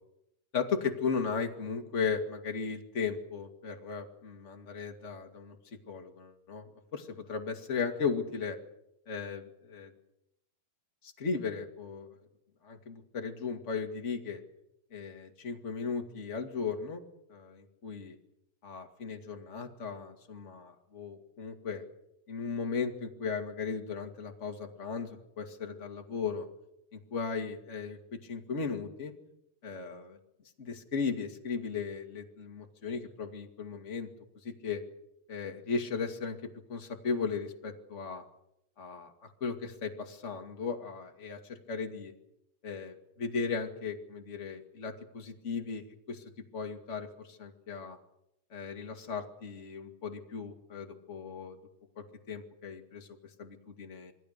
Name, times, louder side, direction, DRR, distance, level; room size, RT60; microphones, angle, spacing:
voice 1, 0.5-5.6 5.9-8.6 9.1-9.9 11.0-12.1 12.6-14.4 14.9-17.0 17.3-18.2 18.6-21.8 22.3-26.5 26.9-29.1 29.6-30.2 30.6-34.1 34.4-34.8 35.3-38.2 38.8-42.1 42.6-46.2 46.5-48.0 48.5-51.6 52.0-53.1 53.4-54.1, left 5 dB, 25° left, 4 dB, 1.7 m, -36 dB
27.5 x 20.5 x 6.7 m, 0.81 s
omnidirectional pair, 4.6 m